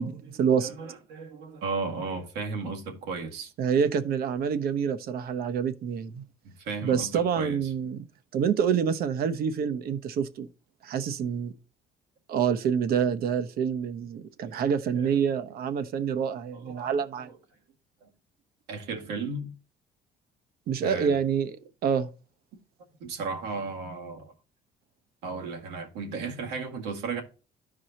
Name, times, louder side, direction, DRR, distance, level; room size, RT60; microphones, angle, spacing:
voice 1, 0.0-0.7 3.6-6.2 6.8-8.1 8.3-10.5 10.8-11.5 12.3-17.3 20.7-21.6 21.8-22.1, right 7 dB, 65° right, 0.9 m, -27 dB
voice 2, 0.6-3.5 6.4-7.7 14.4-14.6 15.0-15.1 16.5-17.4 18.0-18.1 18.7-19.5 20.8-21.2 23.0-24.3 25.2-27.2, right 4 dB, 90° right, 2.0 m, -35 dB
13.0 x 4.8 x 2.9 m
cardioid pair, 110°, 17 cm